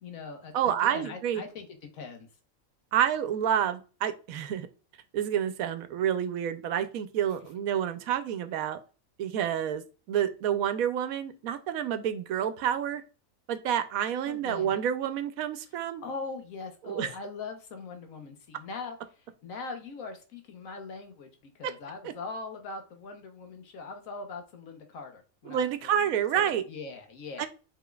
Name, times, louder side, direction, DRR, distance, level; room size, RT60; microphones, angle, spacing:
voice 1, 0.0-2.3 14.2-14.8 15.7-21.3 21.5-26.1 26.3-27.5, left 4 dB, 75° left, 5 dB, 1.3 m, -41 dB
voice 2, 0.5-1.4 2.9-4.7 5.1-8.8 9.2-9.8 10.1-13.0 13.5-16.0 16.8-17.1 25.5-26.6 27.4-27.5, right 9 dB, 80° right, 11 dB, 1.0 m, -28 dB
5.0 x 3.6 x 2.3 m, 0.35 s
omnidirectional pair, 1.5 m